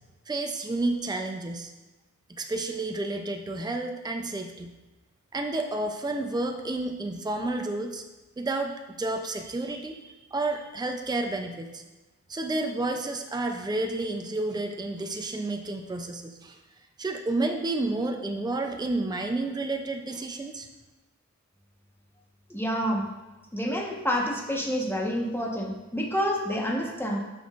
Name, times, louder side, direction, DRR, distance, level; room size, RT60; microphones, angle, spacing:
voice 1, 0.3-1.7 2.4-4.7 5.3-8.0 8.4-11.8 12.3-16.6 17.0-20.7, right 2 dB, 15° right, 4 dB, 0.5 m, -30 dB
voice 2, 22.5-23.0 23.5-27.2, equal, 10° left, -2 dB, 1.3 m, -28 dB
8.7 x 6.3 x 2.5 m, 1.1 s
wide cardioid pair, 65°, 30 cm